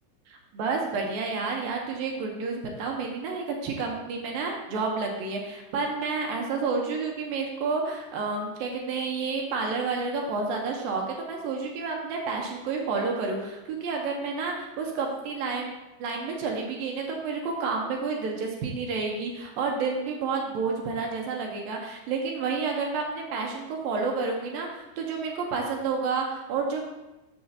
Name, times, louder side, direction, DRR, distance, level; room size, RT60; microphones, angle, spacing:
voice 1, 0.3-15.7 16.0-26.8, right 4 dB, 70° right, 1 dB, 2.3 m, -30 dB
12.5 x 6.7 x 2.8 m, 1.0 s
omnidirectional pair, 4.9 m